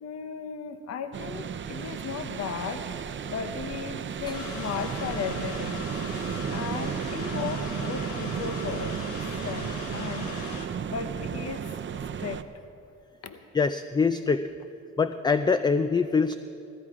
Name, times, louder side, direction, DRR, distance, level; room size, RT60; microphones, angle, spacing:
voice 1, 0.0-2.9 3.3-5.8 6.1-9.1 9.4-10.4 10.8-11.6 12.2-12.4 13.2-13.4, left 6 dB, 55° left, 9 dB, 0.9 m, -36 dB
sound 1, 1.1-12.4, right 8 dB, 40° right, 0.6 m, -34 dB
sound 2, 4.3-10.6, left 5 dB, 80° left, 1.4 m, -40 dB
voice 2, 13.5-14.5 15.0-16.3, left 5 dB, 15° left, 11 dB, 0.3 m, -24 dB
16.5 x 13.5 x 4.8 m, 2.7 s
cardioid pair, 90°, 30 cm